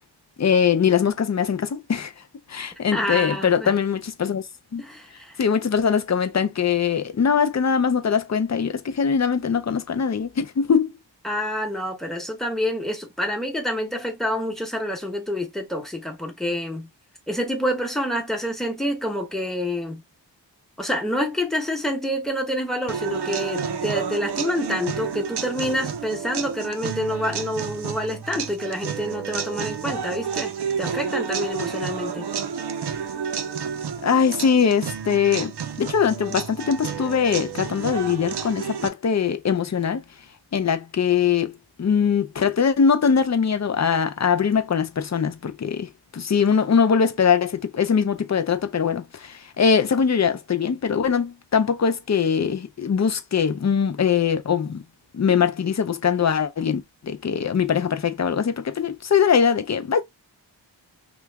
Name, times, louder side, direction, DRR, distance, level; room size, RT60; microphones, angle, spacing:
voice 1, 0.4-2.1 2.5-4.4 4.7-4.8 5.4-10.9 34.0-35.5 35.8-40.0 40.5-54.8 55.1-60.0, left 6 dB, 40° left, 0.5 m, -22 dB
voice 2, 2.9-3.7 4.8-5.4 11.2-16.9 17.3-20.0 20.8-30.5 30.8-32.3, equal, ahead, 0.9 m, -27 dB
sound 1, 22.9-38.9, right 6 dB, 60° right, 0.5 m, -30 dB
3.0 x 2.3 x 3.3 m
wide cardioid pair, 70°, 45 cm